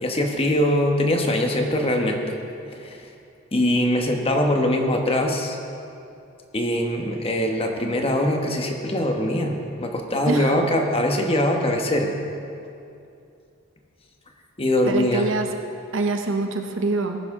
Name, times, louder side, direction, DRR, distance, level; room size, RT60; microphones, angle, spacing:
voice 1, 0.0-2.4 2.8-3.1 3.5-5.6 6.5-12.1 14.6-15.3, left 1 dB, 30° left, 3 dB, 1.2 m, -22 dB
voice 2, 10.2-10.6 14.9-15.5 15.9-17.2, right 3 dB, 70° right, 5 dB, 0.8 m, -25 dB
19.0 x 10.0 x 3.7 m, 2.6 s
head